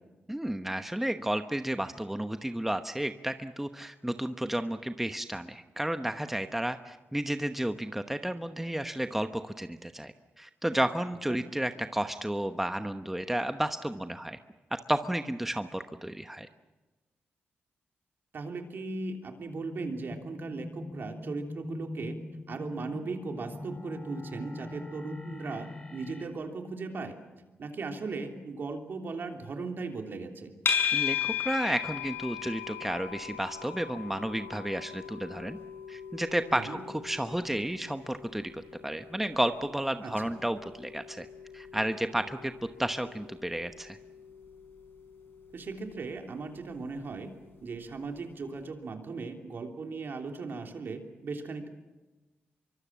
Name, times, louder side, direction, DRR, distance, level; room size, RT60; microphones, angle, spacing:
voice 1, 0.3-14.4 14.7-16.5 30.9-35.6 35.9-38.5 38.8-41.3 41.5-42.5 42.8-44.0, right 1 dB, 5° right, 8 dB, 1.0 m, -32 dB
voice 2, 18.3-22.2 22.5-27.2 27.6-30.5 36.5-36.8 40.0-40.3 45.5-47.3 47.6-51.7, right 4 dB, 60° right, 4 dB, 3.3 m, -38 dB
sound 1, 19.5-26.3, left 2 dB, 20° left, 3.8 m, -42 dB
sound 2, 30.7-47.9, left 8 dB, 65° left, 4.9 m, -38 dB
25.0 x 24.0 x 7.5 m, 1.2 s
cardioid pair, 85°, 4 cm